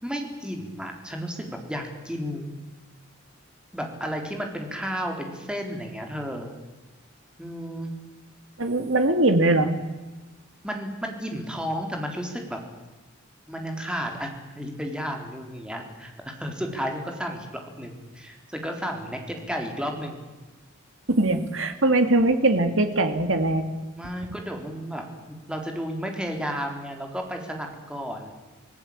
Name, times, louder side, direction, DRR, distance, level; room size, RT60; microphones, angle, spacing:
voice 1, 0.0-2.5 3.7-6.5 7.4-7.9 10.6-12.6 13.5-20.2 24.0-28.3, equal, 5° right, 3 dB, 3.9 m, -33 dB
voice 2, 8.6-9.7 21.1-23.7, right 2 dB, 75° right, 7 dB, 2.4 m, -21 dB
26.0 x 18.0 x 8.8 m, 1.2 s
head